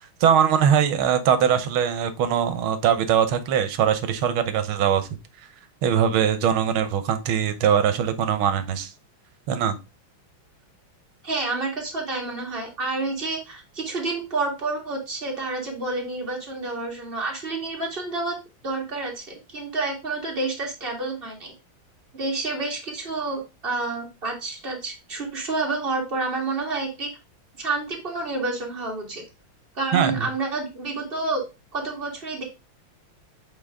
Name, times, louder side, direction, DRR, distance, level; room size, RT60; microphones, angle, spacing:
voice 1, 0.2-5.1 5.8-8.9 9.5-9.8 29.9-30.3, right 8 dB, 85° right, 11 dB, 1.6 m, -21 dB
voice 2, 11.2-18.4 18.6-21.5 22.1-27.1 27.6-29.2 29.8-31.4 31.7-32.4, right 3 dB, 30° right, -1 dB, 1.9 m, -29 dB
7.5 x 4.0 x 3.6 m, 0.26 s
omnidirectional pair, 2.3 m